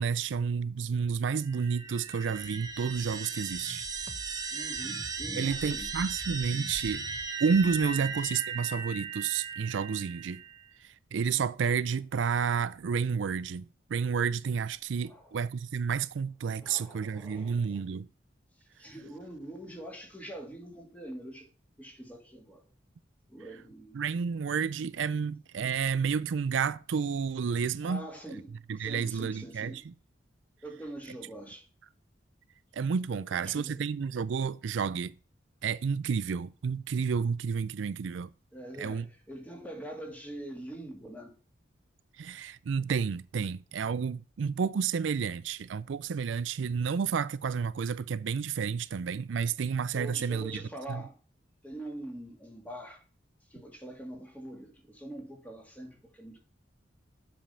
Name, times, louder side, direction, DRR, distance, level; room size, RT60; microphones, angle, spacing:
voice 1, 0.0-3.9 5.3-7.0 7.4-10.4 10.8-18.1 23.9-28.1 28.7-29.9 32.7-35.1 35.6-38.3 38.8-39.1 42.2-50.6 50.9-51.0, right 6 dB, 80° right, 0.4 m, -30 dB
sound 1, 1.4-10.7, right 4 dB, 20° right, 1.0 m, -37 dB
voice 2, 4.5-5.9 15.0-15.4 16.6-17.9 18.6-21.5 21.8-22.6 23.3-24.1 27.8-29.8 30.6-31.7 33.1-33.8 38.5-41.3 49.9-51.2 51.6-53.0 53.5-56.4, right 1 dB, 10° left, 2.0 m, -44 dB
7.6 x 5.1 x 5.5 m
head